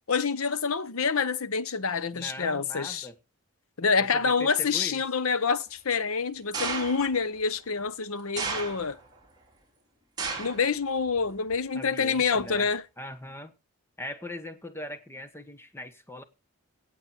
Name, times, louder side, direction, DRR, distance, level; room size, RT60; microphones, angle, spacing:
voice 1, 0.1-3.1 3.8-9.0 10.4-12.8, left 5 dB, 75° left, 0.9 m, -27 dB
voice 2, 2.1-3.2 4.0-5.0 11.7-12.7 13.0-13.5 14.0-16.2, left 1 dB, 10° left, 1.2 m, -40 dB
sound 1, 6.5-7.2 8.4-9.1 10.2-10.7 11.1-11.5 12.4-12.5, right 4 dB, 20° right, 4.1 m, -33 dB
17.5 x 7.8 x 4.5 m
head